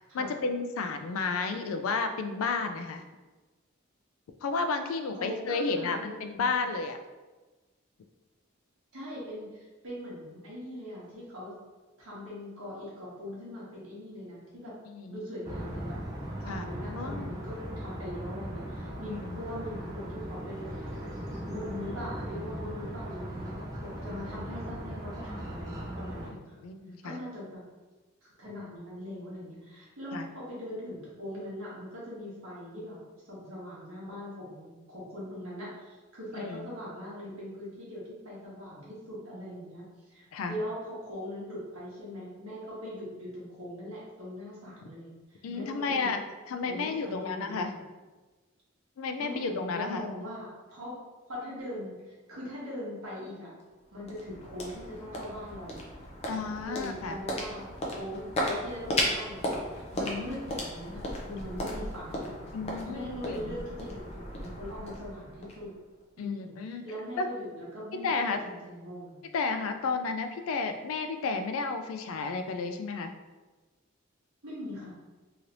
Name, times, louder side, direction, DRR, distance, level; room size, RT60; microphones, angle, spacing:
voice 1, 0.1-3.0 4.4-7.0 14.9-15.2 16.5-17.3 19.0-19.4 26.6-27.2 30.1-30.3 36.4-36.7 40.3-40.6 45.4-46.2 46.5-47.7 49.0-50.0 56.3-57.2 62.5-63.6 66.2-66.8 67.2-67.3 68.0-68.4 69.3-73.1, left 4 dB, 85° left, 7 dB, 0.3 m, -32 dB
voice 2, 5.1-6.6 8.9-11.5 12.0-14.7 15.1-16.0 16.4-20.9 21.3-26.6 27.0-27.6 28.2-33.0 33.2-46.1 46.7-47.8 49.2-50.9 51.3-53.5 53.9-55.9 56.6-57.7 57.9-62.3 62.8-65.7 66.2-69.3 74.4-74.9, left 1 dB, 85° right, -7 dB, 1.2 m, -41 dB
sound 1, 15.4-26.3, equal, 20° right, 0.4 m, -38 dB
sound 2, 53.6-66.0, left 1 dB, 30° left, 0.5 m, -36 dB
3.1 x 2.8 x 2.5 m, 1.2 s
head